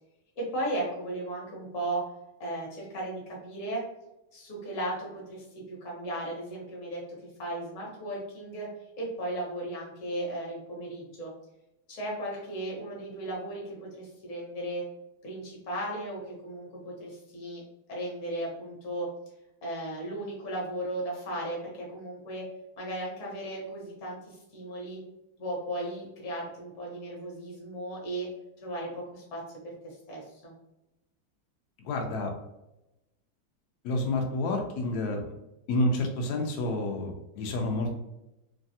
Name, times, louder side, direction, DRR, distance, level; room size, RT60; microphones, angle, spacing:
voice 1, 0.4-2.0 2.4-3.8 4.3-7.0 7.4-8.7 9.0-11.3 11.9-14.8 15.2-17.6 17.9-19.1 19.6-22.4 22.8-25.0 25.4-28.3 28.6-29.4 29.8-30.5, right 1 dB, 50° left, -3 dB, 1.1 m, -36 dB
voice 2, 31.8-32.3 33.8-35.2 35.7-37.9, left 2 dB, 85° left, 2 dB, 0.8 m, -29 dB
3.2 x 2.3 x 2.6 m, 0.92 s
omnidirectional pair, 2.3 m